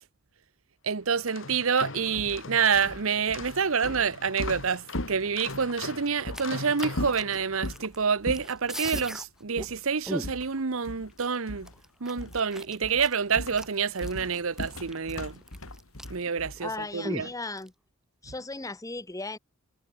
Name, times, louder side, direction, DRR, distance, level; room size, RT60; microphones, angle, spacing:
voice 1, 0.8-11.7 12.0-15.4 16.1-17.3, right 6 dB, 70° right, 0.9 m, -28 dB
sound 1, 1.1-7.8, left 3 dB, 60° left, 1.9 m, -41 dB
sound 2, 2.1-5.8 6.3-6.4 6.9-7.9 8.3-8.6 8.9-9.2 9.6-9.8 10.2-11.2 11.5-11.8 12.2-12.5 12.8-16.8, left 1 dB, 80° left, 3.7 m, -38 dB
sound 3, 6.0-8.0 8.3-9.3 9.6-9.7 10.1-10.6 11.2-11.3 11.7-16.3 16.6-16.7 17.0-17.7, equal, ahead, 1.4 m, -38 dB
voice 2, 16.6-17.7 18.2-19.4, left 2 dB, 15° left, 1.1 m, -36 dB
head